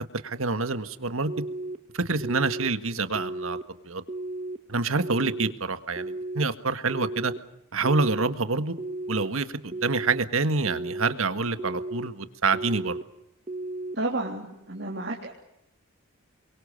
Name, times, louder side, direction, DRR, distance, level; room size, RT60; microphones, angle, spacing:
voice 1, 0.2-1.3 1.9-3.6 3.8-4.0 4.7-7.3 7.7-8.7 9.1-13.0, right 3 dB, 80° right, 10 dB, 1.7 m, -27 dB
sound 1, 1.3-1.8 2.2-2.7 3.1-3.6 4.1-4.6 5.0-5.5 6.0-6.4 6.9-7.4 7.8-8.3 8.8-9.3 9.7-10.2 10.7-11.1 11.6-12.1 12.5-13.0 13.5-14.0, right 2 dB, 30° right, 1.5 m, -34 dB
voice 2, 14.0-15.3, right 2 dB, 50° right, -2 dB, 3.5 m, -31 dB
28.5 x 23.5 x 6.7 m, 0.82 s
head